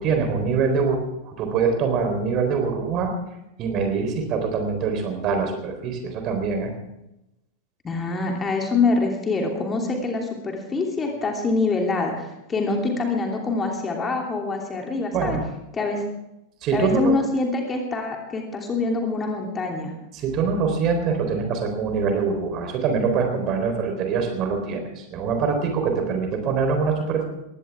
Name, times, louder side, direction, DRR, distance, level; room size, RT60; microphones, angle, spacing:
voice 1, 0.0-3.1 3.6-6.7 15.1-15.4 16.6-17.2 20.1-27.3, right 5 dB, 35° right, 5 dB, 3.9 m, -24 dB
voice 2, 7.8-15.4 15.7-16.0 16.7-19.9, left 3 dB, 20° left, 1 dB, 3.0 m, -25 dB
21.0 x 16.5 x 3.6 m, 0.88 s
figure-of-eight pair, 90°, 0 cm